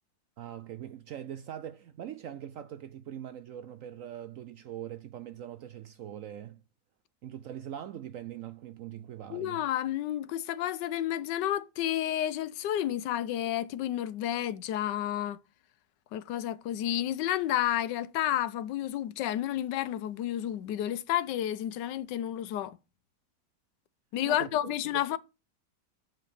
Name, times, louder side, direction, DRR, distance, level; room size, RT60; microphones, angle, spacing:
voice 1, 0.4-6.6 7.2-9.6 24.2-25.0, right 10 dB, 70° right, 0.8 m, -42 dB
voice 2, 9.3-15.4 16.1-22.8 24.1-25.2, left 12 dB, 90° left, 1.3 m, -31 dB
7.3 x 5.1 x 5.4 m
omnidirectional pair, 1.8 m